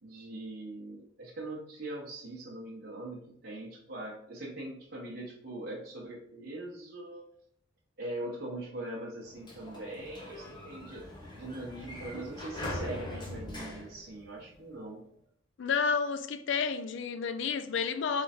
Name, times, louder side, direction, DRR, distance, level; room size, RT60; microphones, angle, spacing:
voice 1, 0.0-7.2 8.0-11.0 11.3-15.0, right 1 dB, 55° right, -5 dB, 1.0 m, -41 dB
Sliding door, 9.2-14.8, left 1 dB, 25° left, 1.0 m, -42 dB
voice 2, 15.6-18.2, left 5 dB, 65° left, 11 dB, 0.4 m, -30 dB
3.8 x 3.3 x 4.2 m, 0.71 s
head